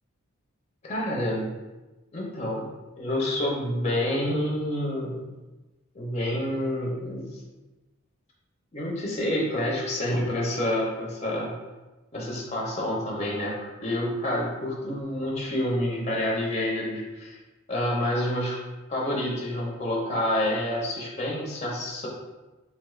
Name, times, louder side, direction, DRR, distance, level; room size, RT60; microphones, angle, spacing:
voice 1, 0.8-1.5 2.1-2.7 3.0-5.2 5.9-7.4 8.7-11.5 12.1-17.4 17.7-18.6 18.9-22.1, left 1 dB, 30° left, -3 dB, 0.6 m, -28 dB
3.9 x 2.3 x 3.1 m, 1.1 s
head